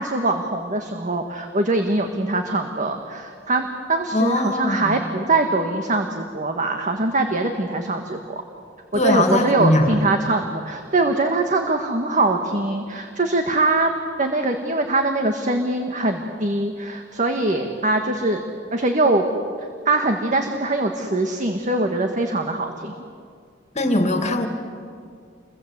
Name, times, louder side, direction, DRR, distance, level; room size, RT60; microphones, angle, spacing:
voice 1, 0.0-8.4 8.9-13.9 14.2-18.4 18.7-19.2 19.8-22.9, right 2 dB, 40° right, 4 dB, 1.7 m, -22 dB
voice 2, 4.1-5.0 8.9-10.1 23.7-24.5, left 1 dB, 35° left, 5 dB, 2.3 m, -20 dB
29.5 x 22.5 x 8.1 m, 2.2 s
head